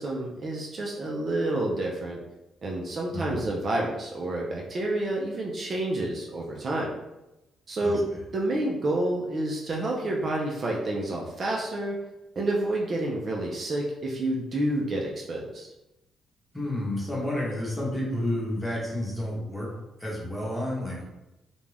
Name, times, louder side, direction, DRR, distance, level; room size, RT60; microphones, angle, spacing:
voice 1, 0.0-2.2 2.6-6.9 7.7-8.0 8.3-12.0 12.4-15.7, right 1 dB, 45° right, -2 dB, 0.4 m, -29 dB
voice 2, 3.1-3.4 7.8-8.0 16.5-19.7 20.0-21.0, left 1 dB, 10° left, -5 dB, 1.0 m, -30 dB
2.5 x 2.2 x 3.2 m, 0.97 s
cardioid pair, 90°, 0 cm